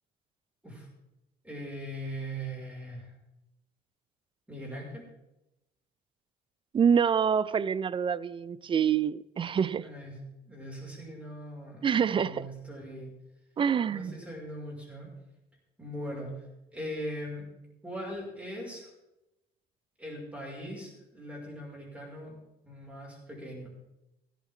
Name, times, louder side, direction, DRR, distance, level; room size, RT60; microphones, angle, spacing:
voice 1, 1.4-3.1 4.5-5.0 9.8-13.1 13.9-15.1 15.8-16.5 16.7-17.5 17.8-18.9 20.0-22.4 22.6-23.7, equal, 10° right, 5.8 m, -40 dB
voice 2, 6.7-9.8 11.8-12.5 13.6-14.1, right 7 dB, 30° right, 0.4 m, -26 dB
16.5 x 12.0 x 3.7 m
cardioid pair, 110°, 17 cm